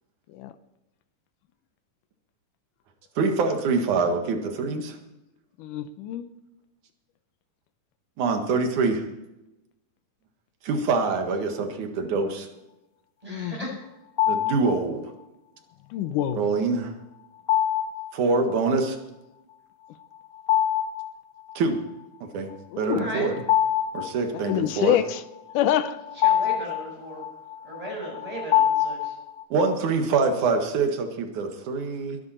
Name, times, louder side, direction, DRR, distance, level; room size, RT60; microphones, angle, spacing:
voice 1, 3.2-5.0 8.2-9.0 10.6-12.5 14.3-15.1 16.3-16.9 18.1-19.0 21.6-21.8 22.2-23.4 23.9-25.0 29.5-32.2, right 4 dB, 70° right, 5 dB, 3.0 m, -25 dB
voice 2, 5.6-6.3 13.3-13.8 15.9-16.5 22.7-23.1 24.4-25.2 25.5-26.0, left 11 dB, 90° left, 11 dB, 2.3 m, -26 dB
voice 3, 13.2-13.7 22.9-23.3 26.2-27.2 27.7-29.1, right 1 dB, 10° right, -3 dB, 7.2 m, -36 dB
sound 1, 14.2-14.8 17.5-18.1 20.4-21.1 21.5-21.6 23.0-24.6 25.5-29.4, left 10 dB, 60° left, 2.4 m, -24 dB
22.0 x 10.5 x 4.3 m, 0.94 s
omnidirectional pair, 3.6 m